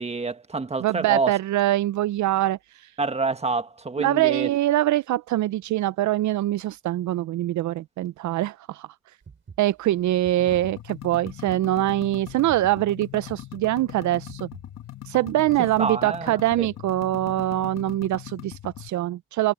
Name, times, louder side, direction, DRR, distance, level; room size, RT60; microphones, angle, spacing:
voice 1, 0.0-1.3 3.0-4.5 15.8-16.7, right 3 dB, 20° right, 1.6 m, -27 dB
voice 2, 0.8-2.6 4.0-8.9 9.6-14.5 15.1-19.5, right 14 dB, 70° right, 0.6 m, -24 dB
sound 1, 9.2-16.0, right 5 dB, 40° right, 5.0 m, -48 dB
sound 2, 10.4-18.9, left 13 dB, 60° left, 1.4 m, -40 dB
cardioid pair, 90°, 30 cm